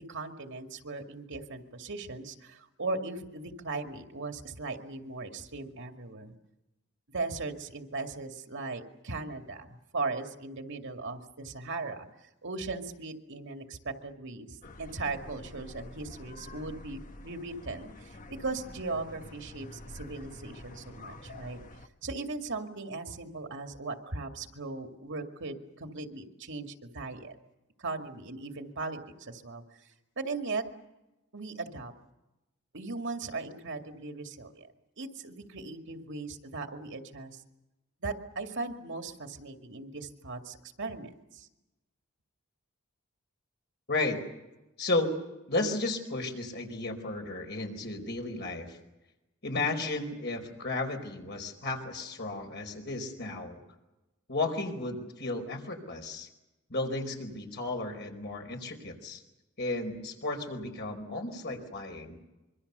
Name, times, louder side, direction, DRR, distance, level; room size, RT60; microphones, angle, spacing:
voice 1, 0.0-6.3 7.1-12.1 12.4-21.6 22.0-27.4 27.8-29.9 30.2-30.6 31.3-31.9 32.7-34.7 35.0-37.4 38.0-41.5, right 3 dB, 60° right, 5 dB, 2.3 m, -38 dB
sound 1, 14.6-21.9, left 1 dB, 40° left, 1.3 m, -48 dB
voice 2, 43.9-44.2 44.8-45.1 45.5-48.8 49.4-53.6 54.3-56.3 56.7-59.2 59.6-62.2, left 2 dB, 55° left, 3 dB, 4.5 m, -33 dB
25.5 x 24.0 x 6.8 m, 0.99 s
head